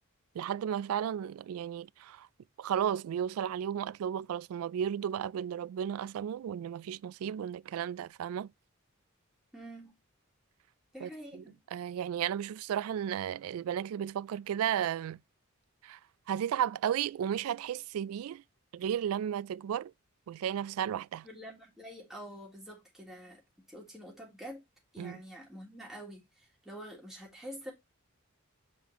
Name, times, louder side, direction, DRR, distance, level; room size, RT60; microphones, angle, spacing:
voice 1, 0.3-2.3 2.6-8.5 11.0-11.4 11.7-15.2 15.8-16.0 16.3-18.4 18.7-19.9 20.3-21.3 25.0-25.2, right 9 dB, 75° right, 0.3 m, -34 dB
voice 2, 9.5-9.9 10.9-11.6 21.2-24.6 24.9-27.7, equal, ahead, 3.2 m, -47 dB
7.6 x 5.5 x 3.0 m
head